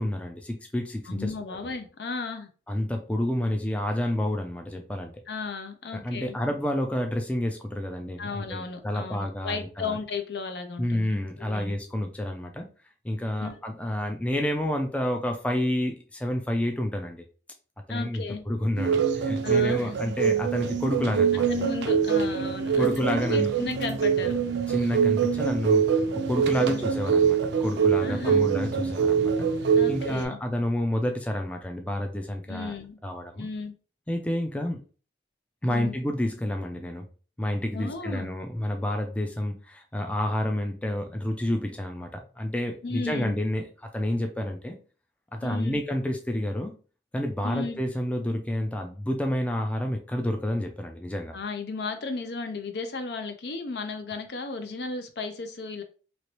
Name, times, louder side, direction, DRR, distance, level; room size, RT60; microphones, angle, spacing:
voice 1, 0.0-1.6 2.7-5.1 5.9-10.0 10.8-12.7 13.0-17.2 17.9-21.7 22.8-23.5 24.7-25.9 26.3-29.5 29.9-32.7 33.0-33.5 34.1-34.8 35.6-37.1 37.4-44.8 45.3-46.7 47.1-51.3, left 1 dB, 10° left, 4 dB, 0.3 m, -29 dB
voice 2, 1.1-2.5 5.3-6.4 8.2-11.1 11.4-11.8 13.4-13.6 17.9-18.4 19.4-19.9 21.5-24.4 26.5-26.8 28.0-28.6 29.8-30.4 32.5-33.0 33.4-33.7 35.6-36.0 37.7-38.3 42.8-43.4 45.4-45.8 47.4-47.8 51.3-55.8, left 4 dB, 70° left, 7 dB, 0.6 m, -34 dB
sound 1, 18.8-30.3, right 6 dB, 80° right, 0.5 m, -24 dB
3.0 x 2.9 x 2.9 m, 0.38 s
head